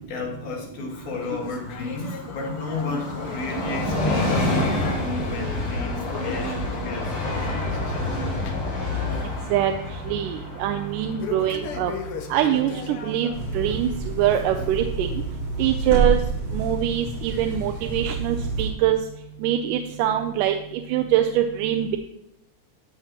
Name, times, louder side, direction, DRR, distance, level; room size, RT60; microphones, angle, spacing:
voice 1, 0.0-7.2 14.6-14.7, left 3 dB, 70° left, 0 dB, 3.1 m, -33 dB
Train, 0.9-14.2 14.6-14.7, left 2 dB, 45° left, 3.5 m, -29 dB
sound 1, 1.2-8.8 9.1-9.4 9.8-9.9 11.2-13.9 14.3-14.5 15.1-15.2 16.1-16.2 17.0-17.1, left 6 dB, 85° left, 1.2 m, -38 dB
voice 2, 10.1-11.9 12.3-13.9 14.2-15.1 15.6-16.2 16.5-19.0 19.4-22.0, right 11 dB, 85° right, 4 dB, 2.2 m, -23 dB
sound 2, 13.3-18.7, right 4 dB, 25° right, 1.8 m, -28 dB
13.0 x 8.1 x 2.9 m, 0.82 s
omnidirectional pair, 3.6 m